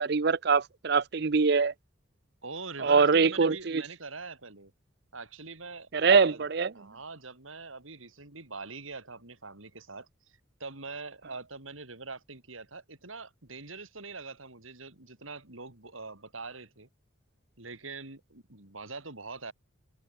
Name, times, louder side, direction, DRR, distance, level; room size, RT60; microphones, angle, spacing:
voice 1, 0.0-1.7 2.8-3.8 5.9-6.7, right 5 dB, 55° right, 0.6 m, -23 dB
voice 2, 2.4-4.7 5.1-6.4 6.7-10.1 10.6-16.9 17.6-19.5, right 4 dB, 85° right, 4.3 m, -43 dB
head